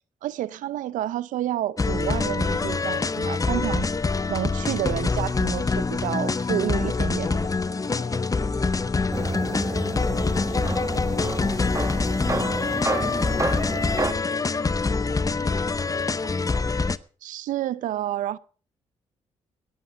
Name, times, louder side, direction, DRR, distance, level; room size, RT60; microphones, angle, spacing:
voice 1, 0.2-3.9 4.3-7.4 17.2-18.4, right 13 dB, 80° right, 0.6 m, -29 dB
sound 1, 1.8-17.0, left 4 dB, 25° left, 0.7 m, -25 dB
voice 2, 7.8-16.1, left 6 dB, 55° left, 2.7 m, -46 dB
sound 2, 9.1-14.1, right 2 dB, 25° right, 1.6 m, -30 dB
17.5 x 10.5 x 5.0 m
supercardioid pair, 60°, 13 cm